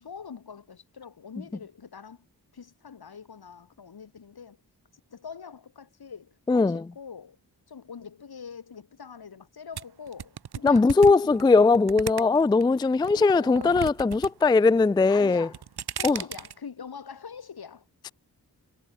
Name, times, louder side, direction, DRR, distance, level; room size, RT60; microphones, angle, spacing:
voice 1, 0.0-2.3 2.5-4.6 5.1-7.4 7.7-11.5 13.1-13.9 15.1-15.6 16.0-17.9, left 6 dB, 75° left, 5.0 m, -43 dB
voice 2, 6.5-6.8 10.6-15.5 16.0-16.2, left 3 dB, 15° left, 0.3 m, -20 dB
sound 1, 9.8-12.6 13.0-14.3 14.6-15.0 15.4-16.5, right 8 dB, 90° right, 1.5 m, -35 dB
wide cardioid pair, 85°, 37 cm